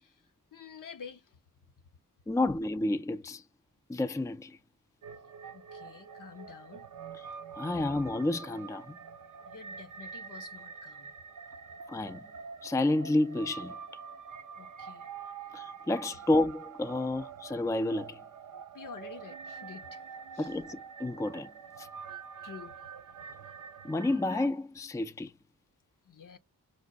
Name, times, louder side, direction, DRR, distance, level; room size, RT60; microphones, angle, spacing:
voice 1, 0.5-1.4 5.5-6.9 9.5-11.1 14.6-15.1 18.7-20.0 20.3-20.5 22.4-22.8 26.0-26.4, left 6 dB, 70° left, 0.8 m, -48 dB
voice 2, 2.3-3.4 3.9-4.6 7.5-9.0 11.9-12.2 12.6-13.8 15.5-18.2 20.4-21.5 21.8-21.9 23.8-25.3, left 2 dB, 10° left, 0.4 m, -30 dB
sound 1, 5.0-24.5, right 6 dB, 65° right, 0.5 m, -46 dB
5.1 x 2.0 x 2.3 m
wide cardioid pair, 65°, 33 cm